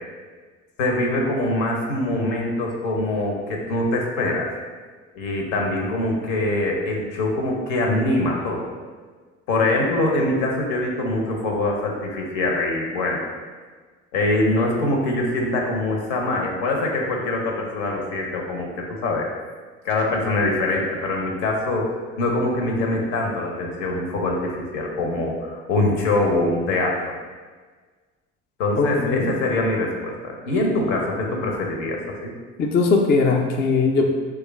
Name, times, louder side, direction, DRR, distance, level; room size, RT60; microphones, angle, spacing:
voice 1, 0.8-4.5 5.1-8.7 9.5-13.3 14.1-19.3 19.8-27.0 28.6-32.3, left 2 dB, 70° left, 0 dB, 0.7 m, -23 dB
voice 2, 28.8-29.3 32.6-34.0, left 4 dB, 25° left, 2 dB, 0.4 m, -19 dB
3.1 x 2.4 x 3.2 m, 1.5 s
figure-of-eight pair, 55°, 39 cm